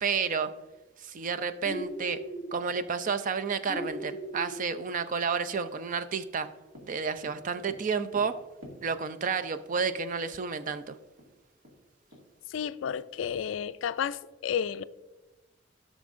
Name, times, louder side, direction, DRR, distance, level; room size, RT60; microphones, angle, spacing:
voice 1, 0.0-0.5 1.0-2.2 2.5-6.5 6.8-8.4 8.8-11.0, right 5 dB, 45° right, 0.4 m, -31 dB
sound 1, 1.6-2.5 3.6-4.6, equal, 5° right, 1.7 m, -37 dB
Tap, 6.7-9.3 10.3-10.4 10.7-10.8 11.2-12.6, equal, 85° right, 2.0 m, -50 dB
voice 2, 12.5-14.8, left 8 dB, 70° left, 0.3 m, -32 dB
14.0 x 6.2 x 2.5 m
head